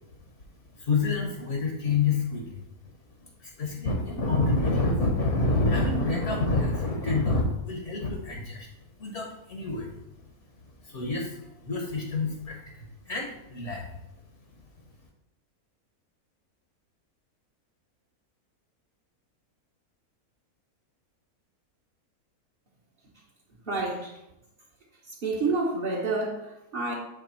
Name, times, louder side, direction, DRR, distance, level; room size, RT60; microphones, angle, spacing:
voice 1, 0.7-2.6 3.2-8.7 9.0-10.0 10.8-13.9 14.5-14.6, left 3 dB, 55° left, 1 dB, 1.2 m, -28 dB
voice 2, 23.7-24.2 25.1-26.9, right 3 dB, 45° right, -4 dB, 0.9 m, -29 dB
7.8 x 3.2 x 4.3 m, 0.87 s
omnidirectional pair, 1.6 m